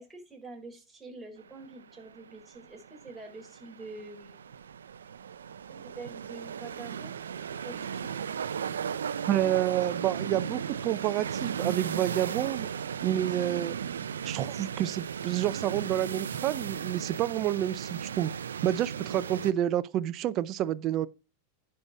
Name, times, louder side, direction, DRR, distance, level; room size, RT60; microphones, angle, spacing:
voice 1, 0.0-4.5 5.7-7.2 7.6-8.2, right 3 dB, 10° right, 4.2 m, -46 dB
sound 1, 1.4-19.5, right 7 dB, 90° right, 0.5 m, -36 dB
voice 2, 9.3-12.7 13.0-13.8 14.2-18.3 18.6-21.1, right 12 dB, 45° right, 0.6 m, -29 dB
10.5 x 5.7 x 4.8 m
hypercardioid pair, 110°, 0 cm